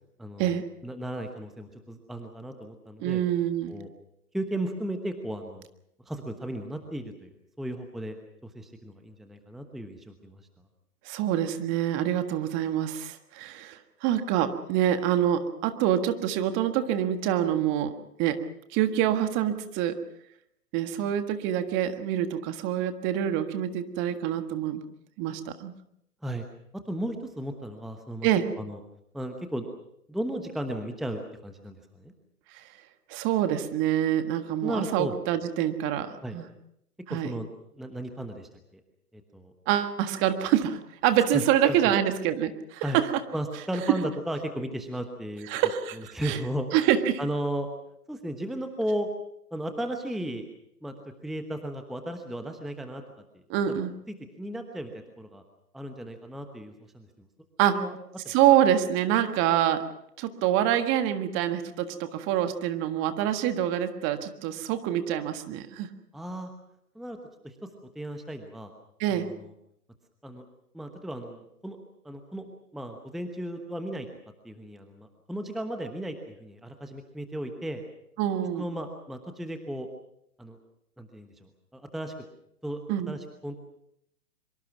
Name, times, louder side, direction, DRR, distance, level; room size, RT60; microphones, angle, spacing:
voice 1, 0.2-3.2 3.7-3.9 4.3-5.7 6.0-7.3 7.6-8.2 8.4-10.5 26.2-26.4 26.9-28.3 28.6-28.8 29.1-29.7 30.1-32.1 34.6-35.2 36.2-36.4 37.1-37.5 37.7-38.8 39.1-39.5 41.3-41.9 42.8-43.0 43.3-45.5 45.9-46.7 47.2-47.7 48.1-49.1 49.5-50.4 50.8-50.9 51.2-53.0 53.3-53.4 53.7-53.8 54.1-55.4 55.7-57.1 57.7-58.0 58.2-58.3 66.1-66.5 66.9-67.2 67.4-67.6 67.9-68.7 69.1-69.5 70.2-70.4 70.7-71.8 72.0-72.5 72.7-74.1 74.4-77.8 78.6-79.9 80.4-80.6 81.0-82.1 82.6-82.8 83.1-83.6, right 1 dB, ahead, 5 dB, 1.1 m, -35 dB
voice 2, 3.0-3.7 11.0-17.9 18.2-18.4 18.7-20.0 20.7-24.8 25.2-25.7 28.2-28.4 32.5-32.6 33.1-36.4 37.1-37.3 39.7-43.1 45.5-46.0 46.2-46.4 46.7-47.2 53.5-53.9 57.6-57.8 58.3-59.8 60.2-65.9 69.0-69.3 78.2-78.7 82.9-83.1, right 11 dB, 25° right, 9 dB, 1.6 m, -26 dB
24.0 x 23.5 x 6.0 m, 0.75 s
figure-of-eight pair, 125°, 47 cm